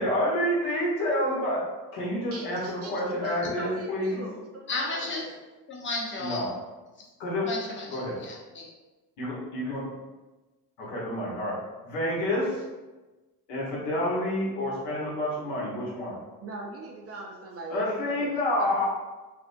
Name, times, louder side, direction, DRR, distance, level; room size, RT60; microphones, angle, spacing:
voice 1, 0.0-4.2 6.2-6.5 7.2-7.5 7.9-8.2 9.2-9.9 10.8-11.6 11.8-12.6 13.5-16.2 17.7-18.9, left 1 dB, 80° left, -5 dB, 1.0 m, -28 dB
voice 2, 2.3-2.9 3.2-5.4 16.4-17.8 18.2-18.9, right 2 dB, 35° right, 0 dB, 0.4 m, -40 dB
voice 3, 4.7-5.2 5.7-6.4 7.4-8.6, left 3 dB, 25° left, -2 dB, 0.7 m, -33 dB
2.4 x 2.1 x 2.5 m, 1.2 s
hypercardioid pair, 60°, 47 cm